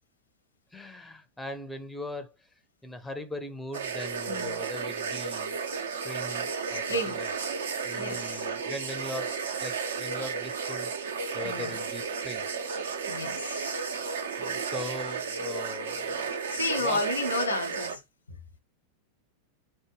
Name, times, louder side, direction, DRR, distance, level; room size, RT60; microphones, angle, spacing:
voice 1, 0.7-2.3 2.8-5.6 6.0-7.3 7.8-10.9 11.3-12.5 14.4-16.3 16.8-17.0, left 1 dB, 5° left, 0.5 m, -40 dB
sound 1, 3.7-18.0, right 5 dB, 65° right, 0.6 m, -33 dB
voice 2, 4.3-4.6 6.7-7.2 8.0-8.6 11.4-11.8 13.1-14.0 16.5-18.0 18.3-18.4, left 2 dB, 80° left, 0.8 m, -32 dB
4.8 x 2.2 x 3.0 m
figure-of-eight pair, 90°, 0 cm